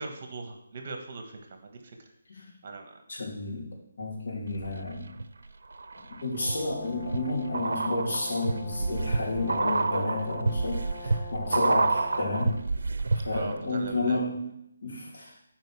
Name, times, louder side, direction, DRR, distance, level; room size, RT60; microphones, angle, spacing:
voice 1, 0.0-2.0 2.6-3.0 13.3-14.2, right 3 dB, 40° right, 5 dB, 1.4 m, -39 dB
voice 2, 3.1-5.1 6.1-12.6 13.1-14.4 14.8-15.3, left 2 dB, 60° left, -2 dB, 3.1 m, -31 dB
sound 1, 4.5-5.2 5.7-13.6 13.8-13.9, right 3 dB, 65° right, 0.7 m, -29 dB
Brass instrument, 6.4-12.6, left 1 dB, ahead, 1.1 m, -43 dB
9.2 x 4.8 x 6.1 m, 0.78 s
figure-of-eight pair, 160°, 0 cm